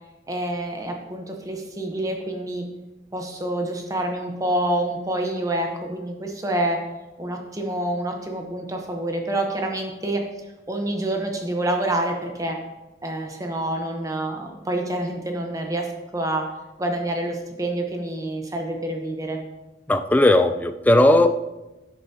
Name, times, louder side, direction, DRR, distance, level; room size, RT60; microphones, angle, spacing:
voice 1, 0.3-2.6 3.1-6.8 7.2-10.2 10.7-12.6 13.0-15.9 16.1-16.5 16.8-19.4, right 1 dB, 20° right, 2 dB, 0.9 m, -27 dB
voice 2, 19.9-21.4, left 1 dB, 10° left, 9 dB, 0.3 m, -17 dB
11.5 x 6.8 x 2.8 m, 1.1 s
head